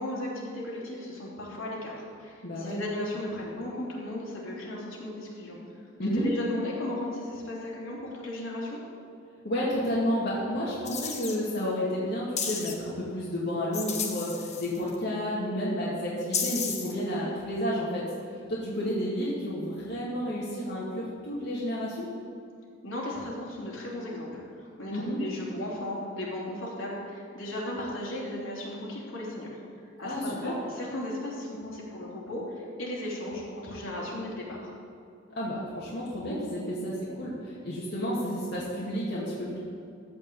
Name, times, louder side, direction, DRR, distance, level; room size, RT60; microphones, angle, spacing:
voice 1, 0.0-5.6 6.2-8.8 22.8-29.6 30.0-34.7, left 1 dB, 80° left, -5 dB, 3.4 m, -36 dB
voice 2, 2.4-2.8 6.0-6.3 9.4-18.0 18.5-22.1 24.9-25.2 30.0-30.5 35.4-39.6, equal, 55° left, -7 dB, 2.3 m, -31 dB
sound 1, 10.9-11.4 12.4-12.7 13.7-15.0 16.3-16.9, left 6 dB, 35° left, 1.2 m, -32 dB
14.5 x 5.3 x 8.2 m, 2.5 s
head